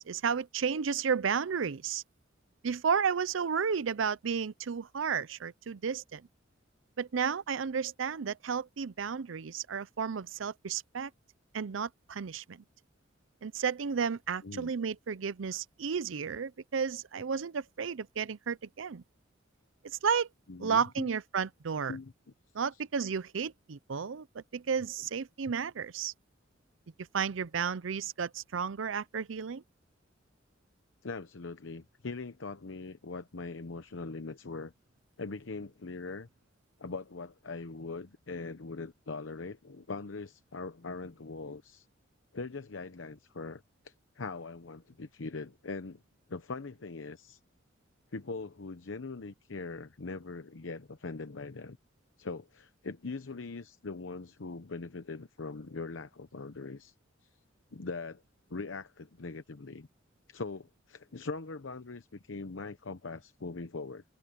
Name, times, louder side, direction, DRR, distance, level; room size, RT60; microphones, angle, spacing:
voice 1, 0.0-2.0 2.6-6.3 7.0-11.1 11.5-12.6 13.4-19.0 19.8-20.3 20.6-22.0 22.5-26.1 27.1-29.6, right 6 dB, 90° right, 0.6 m, -32 dB
voice 2, 20.5-21.1 21.9-22.1 22.7-22.8 31.0-34.7 35.2-36.3 36.8-41.9 42.3-46.0 46.3-47.4 48.1-51.8 52.2-56.9 57.2-57.4 57.7-58.2 58.5-59.9 60.3-64.0, left 3 dB, 90° left, 0.9 m, -41 dB
head